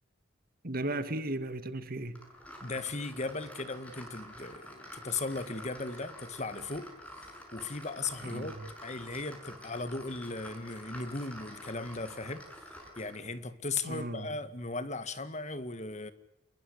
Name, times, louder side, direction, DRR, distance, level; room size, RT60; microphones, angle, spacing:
voice 1, 0.6-2.2 8.2-8.7 13.8-14.3, right 1 dB, 45° right, 2.1 m, -36 dB
sound 1, 2.1-13.3, equal, 5° left, 7.0 m, -48 dB
voice 2, 2.6-12.5 13.0-16.1, left 3 dB, 35° left, 1.8 m, -37 dB
29.0 x 21.5 x 8.3 m
head